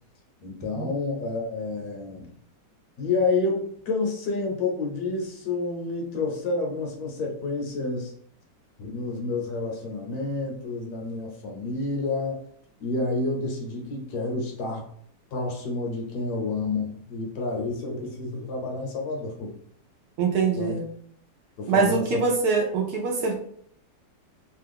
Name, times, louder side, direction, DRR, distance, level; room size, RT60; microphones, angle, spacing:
voice 1, 0.4-2.3 3.0-8.1 8.8-12.4 12.8-14.8 15.3-19.5 20.4-20.8 21.6-22.2, left 3 dB, 70° left, 1 dB, 1.1 m, -29 dB
voice 2, 20.2-20.9 21.7-23.3, right 4 dB, 70° right, 2 dB, 1.0 m, -23 dB
3.1 x 2.2 x 3.4 m, 0.64 s
omnidirectional pair, 1.9 m